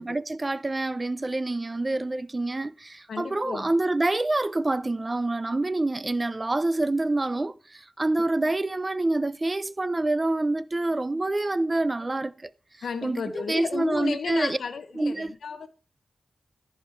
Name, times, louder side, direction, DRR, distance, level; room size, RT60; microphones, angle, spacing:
voice 1, 0.0-12.5 13.0-14.6 15.0-15.3, right 2 dB, 30° right, 0.4 m, -27 dB
voice 2, 3.1-3.7 12.8-15.7, left 5 dB, 80° left, 0.6 m, -33 dB
14.0 x 5.0 x 4.5 m
cardioid pair, 70°, 0 cm